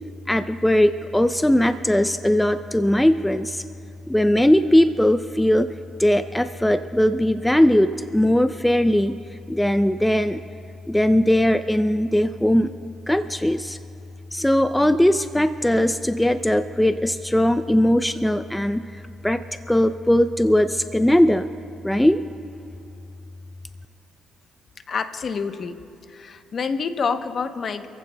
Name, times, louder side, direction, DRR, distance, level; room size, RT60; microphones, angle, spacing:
voice 1, 0.3-3.6 4.1-5.7 6.0-9.2 9.5-10.4 10.9-12.7 13.1-13.8 14.3-18.9 19.2-19.4 19.7-21.5 21.8-22.2, left 1 dB, 5° left, 11 dB, 0.4 m, -19 dB
voice 2, 24.9-25.8 26.1-27.9, left 5 dB, 50° left, 9 dB, 0.8 m, -27 dB
28.0 x 15.0 x 2.2 m, 2.6 s
cardioid pair, 90°, 0 cm